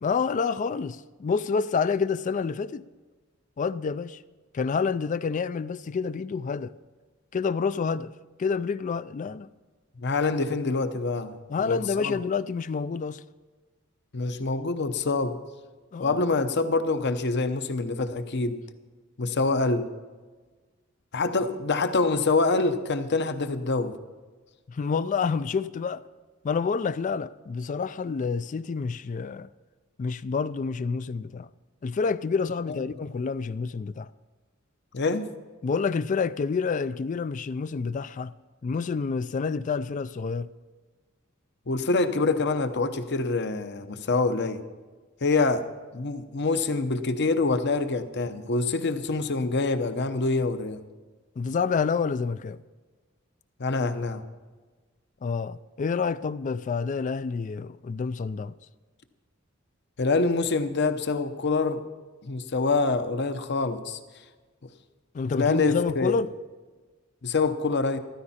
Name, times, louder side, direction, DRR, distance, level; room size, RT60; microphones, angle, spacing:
voice 1, 0.0-2.8 3.6-4.2 4.5-6.7 7.3-8.1 8.4-9.5 11.5-13.2 15.9-16.2 24.7-26.0 26.4-29.5 30.0-31.5 31.8-34.1 35.6-38.3 38.6-40.5 51.4-52.6 55.2-58.5 65.1-66.3, left 5 dB, 40° left, 0.3 m, -28 dB
voice 2, 10.0-12.1 14.1-15.4 16.0-18.6 19.2-19.9 21.1-24.0 34.9-35.3 41.7-44.6 45.2-45.7 45.9-50.8 53.6-54.2 60.0-61.8 62.2-64.0 65.3-66.2 67.2-68.0, left 3 dB, 55° left, 0.8 m, -26 dB
14.5 x 13.0 x 4.3 m
head